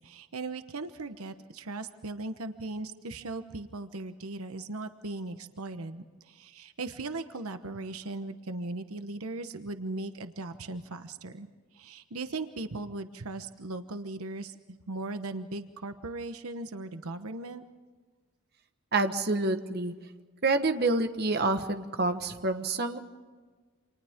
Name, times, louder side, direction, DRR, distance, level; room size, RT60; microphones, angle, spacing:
voice 1, 0.0-11.5 11.7-17.6, right 2 dB, 80° right, 9 dB, 1.1 m, -38 dB
voice 2, 18.9-19.9 20.4-23.0, right 2 dB, 45° right, 7 dB, 1.3 m, -27 dB
29.5 x 27.0 x 3.7 m, 1.4 s
head